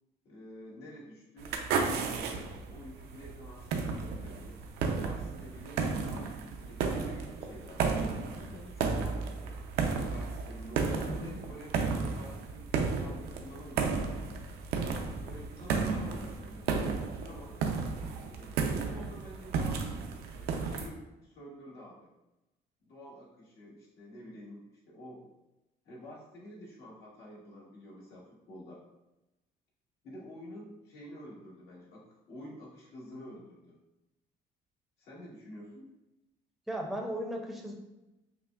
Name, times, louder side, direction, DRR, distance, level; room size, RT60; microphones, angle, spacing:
voice 1, 0.2-4.6 5.0-6.3 6.6-9.6 10.1-14.3 15.1-17.5 18.2-19.8 20.3-22.1 22.8-25.3 25.8-28.8 30.0-33.8 35.0-35.9, equal, 75° left, -6 dB, 1.5 m, -49 dB
sound 1, 1.4-20.9, right 5 dB, 75° right, 0.5 m, -33 dB
voice 2, 36.7-37.7, equal, ahead, 0 dB, 0.6 m, -36 dB
5.5 x 2.1 x 2.3 m, 0.97 s
cardioid pair, 110°, 17 cm